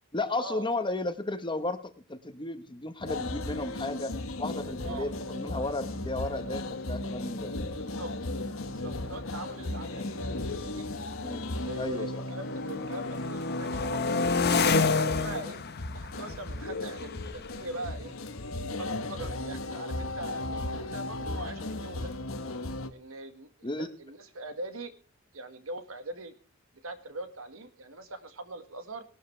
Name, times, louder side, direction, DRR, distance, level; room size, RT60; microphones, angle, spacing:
voice 1, 0.1-7.5 11.2-11.4 11.7-12.1 23.6-23.9, left 2 dB, 25° left, 10 dB, 1.2 m, -34 dB
sound 1, 3.0-22.9, left 2 dB, 75° left, 1.4 m, -36 dB
sound 2, 6.6-6.7 6.9-7.3 8.0-11.9 12.3-18.9, left 4 dB, 50° left, 1.3 m, -32 dB
voice 2, 7.7-8.1 8.6-10.9 11.7-14.2 14.8-15.7 15.9-18.1 18.8-22.1 22.9-24.9 25.3-26.3 26.8-29.0, right 2 dB, 80° right, 9 dB, 1.8 m, -41 dB
18.5 x 12.0 x 3.3 m, 0.36 s
head